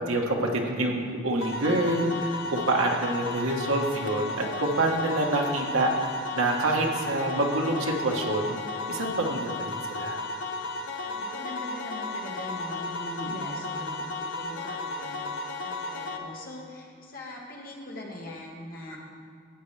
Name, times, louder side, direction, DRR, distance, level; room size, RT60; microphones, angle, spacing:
voice 1, 0.1-6.1 6.3-8.6 8.9-10.2 13.1-13.5 18.9-19.0, right 2 dB, 85° right, 0 dB, 1.4 m, -27 dB
sound 1, 1.4-16.2, left 2 dB, 65° left, 0.8 m, -34 dB
voice 2, 11.0-15.2 15.6-19.0, left 1 dB, 45° left, -2 dB, 1.7 m, -41 dB
14.0 x 8.2 x 3.4 m, 2.4 s
head